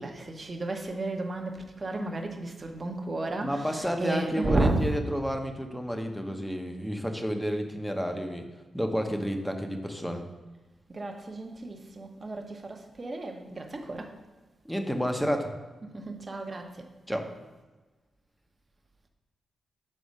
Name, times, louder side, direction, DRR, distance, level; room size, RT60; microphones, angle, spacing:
voice 1, 0.0-4.9 10.9-14.2 15.9-16.9, right 2 dB, 35° right, 3 dB, 0.9 m, -32 dB
voice 2, 3.4-8.4 8.7-10.2 14.6-15.5 17.1-17.3, equal, ahead, 4 dB, 0.8 m, -30 dB
6.4 x 4.1 x 5.4 m, 1.2 s
cardioid pair, 100°, 0 cm